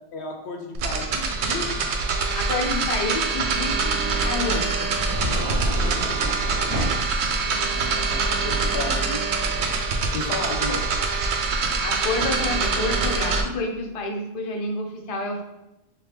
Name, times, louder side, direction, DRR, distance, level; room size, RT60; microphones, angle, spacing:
voice 1, 0.1-1.7 7.4-10.8, left 3 dB, 65° left, 2 dB, 0.8 m, -34 dB
sound 1, 0.7-13.4, right 4 dB, 65° right, 0.8 m, -25 dB
voice 2, 2.4-5.0 11.4-15.4, left 2 dB, 45° left, 1 dB, 0.5 m, -29 dB
sound 2, 3.5-9.0, equal, 40° right, 0.9 m, -31 dB
3.6 x 3.0 x 3.4 m, 0.94 s
omnidirectional pair, 1.3 m